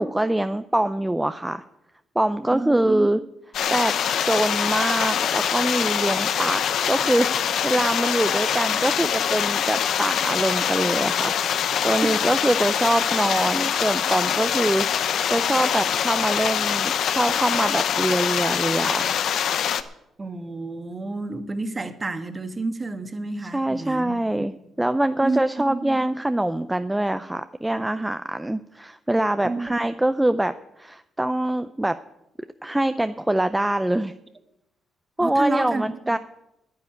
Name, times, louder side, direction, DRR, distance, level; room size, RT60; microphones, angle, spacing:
voice 1, 0.0-1.6 2.2-3.2 3.7-6.6 6.9-11.4 11.8-14.9 15.3-19.1 23.5-32.0 32.6-34.1 35.2-36.2, right 1 dB, 10° right, 10 dB, 0.5 m, -24 dB
voice 2, 2.5-3.1 12.0-12.1 20.2-24.5 25.2-26.0 29.4-29.7 35.2-36.2, right 3 dB, 25° right, 8 dB, 1.4 m, -30 dB
sound 1, 3.5-19.8, left 8 dB, 70° left, 0.8 m, -24 dB
9.8 x 9.3 x 9.2 m, 0.87 s
cardioid pair, 90°, 0 cm